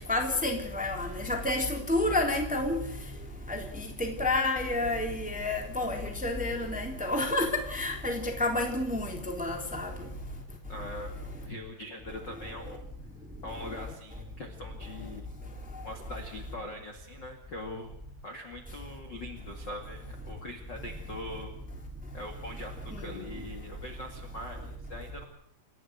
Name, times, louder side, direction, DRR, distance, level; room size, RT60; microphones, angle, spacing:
voice 1, 0.1-2.8 3.5-3.6 4.0-9.9 23.0-23.2, left 2 dB, ahead, 2.3 m, -29 dB
voice 2, 10.7-12.8 13.4-15.3 15.8-18.0 18.2-21.5 22.1-25.2, left 1 dB, 35° left, 1.9 m, -42 dB
28.5 x 13.5 x 8.1 m
omnidirectional pair, 5.5 m